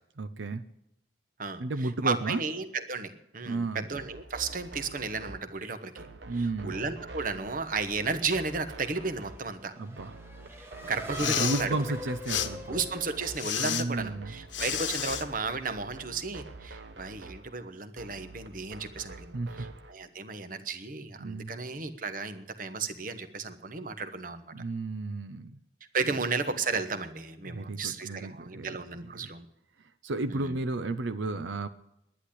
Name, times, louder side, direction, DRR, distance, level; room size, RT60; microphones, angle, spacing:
voice 1, 0.2-0.6 1.6-2.4 3.5-3.9 6.3-6.8 9.8-10.1 11.2-12.8 13.6-14.3 19.3-19.5 21.2-21.6 24.5-25.6 26.1-26.2 27.4-28.7 29.1-29.3 30.0-31.7, right 2 dB, 85° right, 11 dB, 0.7 m, -33 dB
voice 2, 2.0-9.7 10.6-11.7 12.3-24.5 25.9-29.4 30.3-30.5, right 4 dB, 45° right, 10 dB, 1.1 m, -34 dB
sound 1, 4.0-19.9, right 3 dB, 70° right, 1.1 m, -47 dB
Race car auto racing / Accelerating revving vroom, 8.3-14.2, left 1 dB, 15° right, 1.5 m, -44 dB
Respiratory sounds, 11.0-11.6 12.3-12.5 13.4-13.8 14.5-15.2, left 10 dB, 85° left, 1.1 m, -30 dB
11.0 x 10.0 x 10.0 m, 0.80 s
head